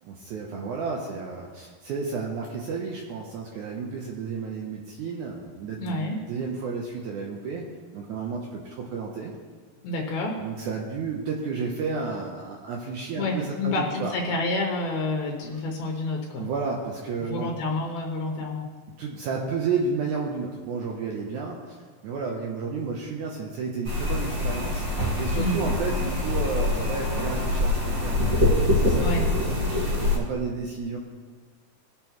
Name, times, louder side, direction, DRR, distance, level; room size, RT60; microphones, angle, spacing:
voice 1, 0.0-7.6 7.9-9.3 10.4-14.1 15.4-15.6 16.4-17.5 19.0-21.8 22.0-28.2 28.7-29.6 30.1-31.0, right 4 dB, 90° right, -1 dB, 1.7 m, -32 dB
voice 2, 5.8-6.2 9.8-10.5 13.2-16.5 17.2-18.7 25.3-25.7 29.0-29.3, left 2 dB, 75° left, 0 dB, 2.7 m, -29 dB
sound 1, 23.8-30.2, left 2 dB, 40° right, 1.8 m, -24 dB
19.5 x 6.8 x 3.0 m, 1.5 s
omnidirectional pair, 4.7 m